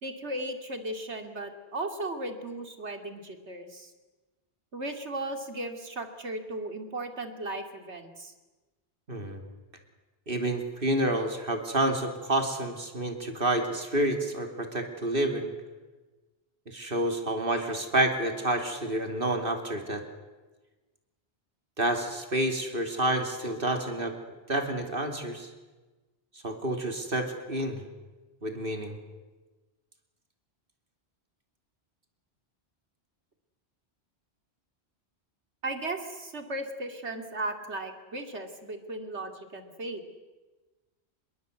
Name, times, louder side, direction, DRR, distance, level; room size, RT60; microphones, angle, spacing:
voice 1, 0.0-3.9 4.7-8.3 35.6-40.0, right 2 dB, 85° right, 6 dB, 2.8 m, -36 dB
voice 2, 9.1-9.4 10.3-15.5 16.7-20.0 21.8-24.1 24.5-25.5 26.4-27.8 28.4-29.0, right 1 dB, 55° right, 5 dB, 3.2 m, -29 dB
26.0 x 22.0 x 8.1 m, 1.2 s
omnidirectional pair, 1.1 m